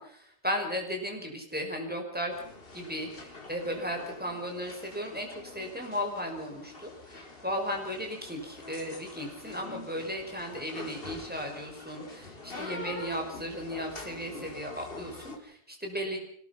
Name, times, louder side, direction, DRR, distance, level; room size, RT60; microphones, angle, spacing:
voice 1, 0.0-2.3 2.7-16.2, equal, 5° right, 2 dB, 5.3 m, -35 dB
sound 1, 2.3-15.4, left 3 dB, 40° left, 2.7 m, -45 dB
25.5 x 18.0 x 5.8 m, 0.65 s
omnidirectional pair, 1.4 m